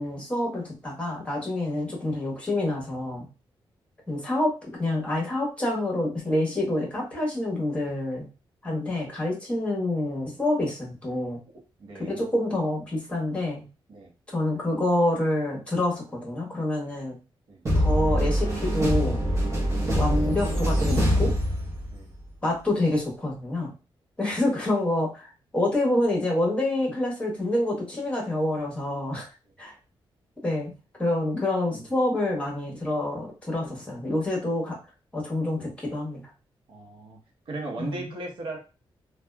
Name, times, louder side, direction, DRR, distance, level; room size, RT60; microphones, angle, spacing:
voice 1, 0.0-3.3 4.1-8.3 8.6-11.4 11.9-13.7 14.3-17.2 17.7-19.2 19.9-21.4 22.4-23.7 24.2-29.3 29.6-29.7 30.4-30.7 31.0-34.8 35.1-36.3 37.8-38.0, left 1 dB, 15° left, -2 dB, 1.2 m, -27 dB
voice 2, 11.5-12.2 13.9-14.1 17.5-17.6 21.9-22.1 24.3-24.4 36.7-37.2 37.5-38.6, right 2 dB, 65° right, 1 dB, 0.9 m, -37 dB
sound 1, 17.7-22.1, equal, 30° right, 0.9 m, -24 dB
2.7 x 2.3 x 2.2 m, 0.31 s
wide cardioid pair, 120°, 9 cm